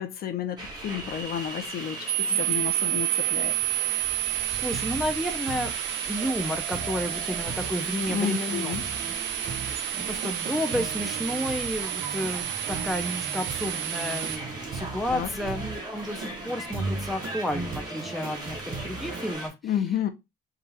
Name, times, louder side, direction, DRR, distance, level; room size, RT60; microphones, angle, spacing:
voice 1, 0.0-3.6 8.1-8.9 15.1-15.3 19.6-20.1, left 9 dB, 55° left, 0.7 m, -31 dB
sound 1, 0.6-19.5, right 2 dB, 20° right, 1.4 m, -38 dB
sound 2, 2.1-14.4, right 14 dB, 75° right, 0.5 m, -30 dB
voice 2, 4.3-8.7 9.6-19.5, equal, ahead, 0.6 m, -32 dB
sound 3, 4.7-5.0 5.5-5.8 6.2-6.4 6.7-19.3, right 3 dB, 50° right, 0.9 m, -38 dB
3.8 x 2.4 x 4.2 m
cardioid pair, 155°, 19 cm